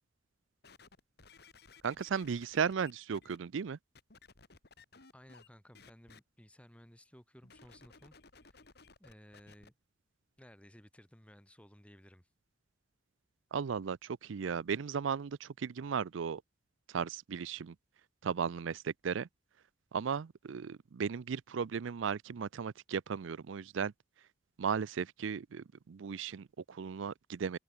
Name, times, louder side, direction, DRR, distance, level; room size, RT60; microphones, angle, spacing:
sound 1, 0.6-3.4 3.9-5.5 5.7-6.2 7.4-9.7 10.4-10.5, left 4 dB, 55° left, 2.3 m, -58 dB
voice 1, 1.8-3.8 13.5-16.4 16.9-17.7 18.2-19.3 19.9-23.9 24.6-27.6, right 6 dB, 80° right, 0.4 m, -36 dB
voice 2, 5.1-8.6 9.0-9.7 10.4-12.3, equal, 5° left, 2.3 m, -58 dB
head